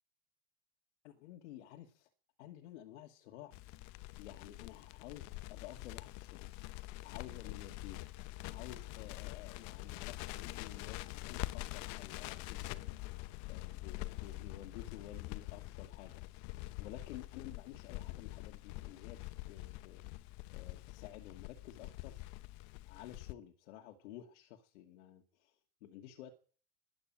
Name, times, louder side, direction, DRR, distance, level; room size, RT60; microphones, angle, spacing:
voice 1, 1.0-2.1 2.4-3.5 4.2-6.5 7.0-8.1 8.5-16.2 16.8-19.2 19.5-20.0 20.5-22.2 22.9-25.5 25.8-26.3, left 12 dB, 80° left, 2.2 m, -52 dB
Crackle, 3.5-23.3, left 18 dB, 50° left, 0.9 m, -45 dB
13.5 x 11.5 x 8.8 m
supercardioid pair, 140°, 35 cm